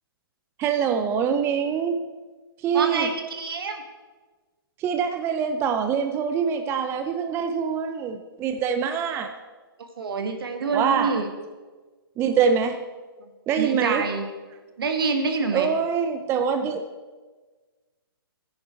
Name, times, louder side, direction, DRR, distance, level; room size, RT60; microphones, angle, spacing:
voice 1, 0.6-2.0 2.6-3.1 4.8-9.3 10.7-11.2 12.2-12.8 13.5-14.0 15.5-16.8, right 7 dB, 20° right, 7 dB, 0.6 m, -24 dB
voice 2, 2.7-3.8 10.0-11.3 13.6-14.3 14.8-15.7, right 4 dB, 70° right, 5 dB, 1.9 m, -26 dB
14.0 x 9.6 x 4.5 m, 1.3 s
hypercardioid pair, 130°, 13 cm